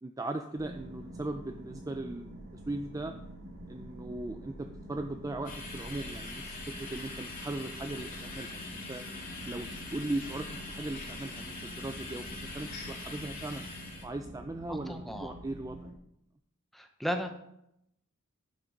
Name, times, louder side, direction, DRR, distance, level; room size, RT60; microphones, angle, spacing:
voice 1, 0.0-2.4 2.7-3.1 3.7-9.0 9.4-12.3 12.5-13.7 14.0-16.0, right 2 dB, 15° right, 6 dB, 0.4 m, -38 dB
sound 1, 0.6-15.9, right 1 dB, 60° right, 2.4 m, -46 dB
sound 2, 5.4-14.0, left 3 dB, 40° left, 2.9 m, -43 dB
voice 2, 14.7-15.3 16.7-17.3, equal, ahead, 5 dB, 0.8 m, -35 dB
11.0 x 5.4 x 5.2 m, 0.80 s
head